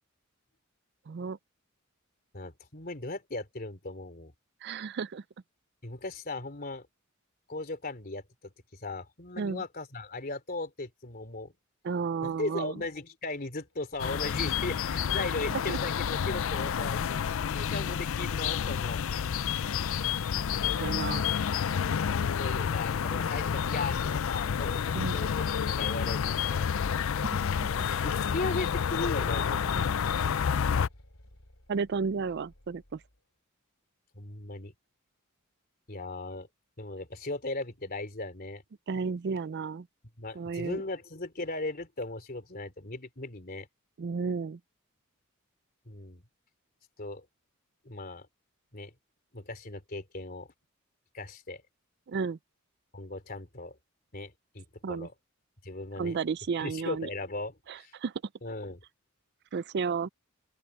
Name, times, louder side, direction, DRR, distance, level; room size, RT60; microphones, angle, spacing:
voice 1, 1.1-1.4 4.6-5.2 9.4-9.6 11.8-12.7 15.7-15.8 20.8-21.2 24.9-25.2 31.7-33.0 38.9-39.9 40.4-40.8 44.0-44.6 52.1-52.4 54.8-55.1 56.0-57.1 57.7-58.1 59.5-60.1, right 5 dB, 50° right, 0.4 m, -32 dB
voice 2, 2.3-4.3 5.8-6.9 7.5-11.5 12.2-19.0 22.4-26.7 27.9-29.9 34.2-34.7 35.9-36.5 36.8-38.6 40.2-43.7 45.9-46.2 47.0-47.3 47.8-48.3 48.7-48.9 49.3-50.5 51.1-51.6 52.9-53.8 54.1-55.1 55.6-56.2 56.6-57.9 58.4-58.8, left 2 dB, 45° left, 3.3 m, -37 dB
sound 1, 13.7-17.4 19.1-21.3 21.6-21.7 22.6-22.7 23.2-23.3 25.0-29.1 29.8-33.2, left 1 dB, 80° left, 3.7 m, -56 dB
sound 2, 14.0-30.9, left 7 dB, 65° left, 0.4 m, -29 dB
open air
head